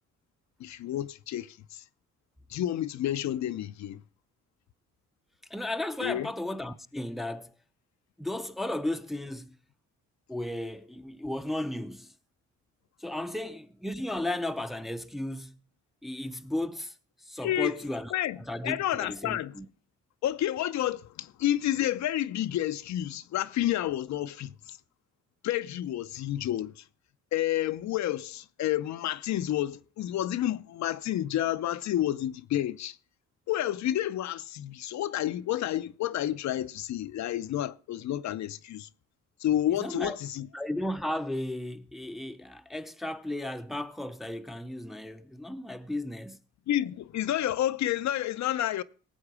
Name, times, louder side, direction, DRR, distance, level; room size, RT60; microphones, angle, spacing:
voice 1, 0.6-1.8 2.5-4.0 6.0-6.3 17.4-17.7 18.1-18.4 18.6-19.5 20.2-24.8 25.4-26.8 27.3-33.0 33.5-38.9 39.4-40.5 46.7-48.8, left 12 dB, 65° left, 0.6 m, -30 dB
voice 2, 5.5-7.5 8.2-9.6 10.3-12.1 13.0-15.6 16.0-16.9 17.2-18.1 18.5-19.7 39.7-40.2 40.5-46.4, left 1 dB, ahead, 0.6 m, -34 dB
17.5 x 7.6 x 4.8 m
cardioid pair, 90°, 30 cm